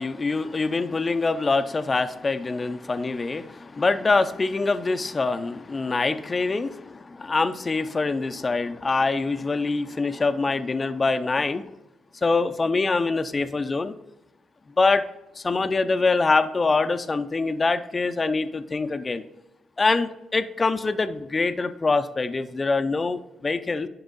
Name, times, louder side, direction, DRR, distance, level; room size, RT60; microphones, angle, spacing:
voice 1, 0.0-11.7 12.2-13.9 14.8-15.1 15.4-19.2 19.8-23.9, left 3 dB, 30° left, 10 dB, 0.5 m, -24 dB
10.5 x 6.0 x 4.1 m, 0.92 s
cardioid pair, 100°, 0 cm